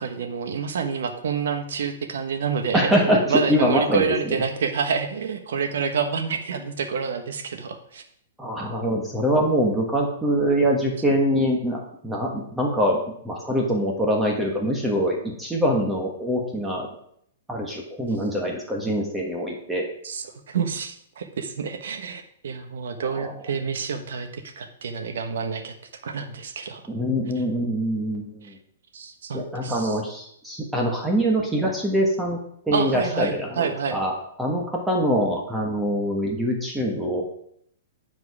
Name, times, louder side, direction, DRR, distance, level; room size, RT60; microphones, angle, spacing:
voice 1, 0.0-2.9 3.3-8.0 20.0-25.7 26.0-26.8 28.4-28.5 28.9-30.0 32.7-34.0, right 6 dB, 75° right, 7 dB, 1.2 m, -28 dB
voice 2, 2.7-3.2 3.5-4.4 8.4-16.9 17.5-19.9 23.0-23.3 26.9-28.6 29.3-32.4 32.7-33.6 33.9-34.1 34.4-37.2, equal, 5° right, -1 dB, 1.4 m, -24 dB
10.5 x 4.8 x 4.8 m, 0.68 s
hypercardioid pair, 145°, 0 cm